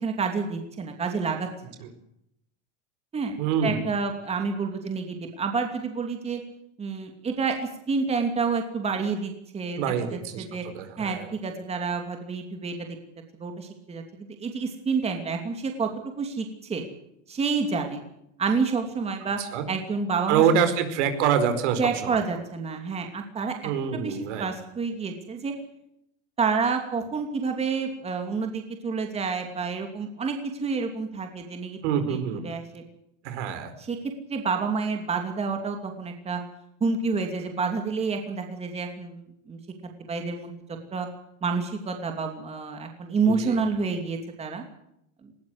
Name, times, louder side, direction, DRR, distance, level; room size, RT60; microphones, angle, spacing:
voice 1, 0.0-1.5 3.1-3.3 3.6-6.4 6.8-9.8 10.1-10.6 11.0-12.9 13.4-16.8 17.3-18.0 18.4-19.4 19.7-20.4 21.8-25.5 26.4-31.8 32.1-32.8 33.8-34.0 34.3-36.4 36.8-39.6 40.1-40.5 40.9-41.1 41.4-44.6 45.2-45.3, right 4 dB, 15° right, 4 dB, 2.8 m, -29 dB
voice 2, 3.4-3.9 9.8-10.4 10.7-11.3 19.4-19.6 20.3-22.2 23.6-24.5 31.8-32.4 33.2-33.7 43.3-43.6, right 7 dB, 65° right, 10 dB, 4.8 m, -25 dB
20.0 x 19.0 x 8.0 m, 0.78 s
supercardioid pair, 155°, 37 cm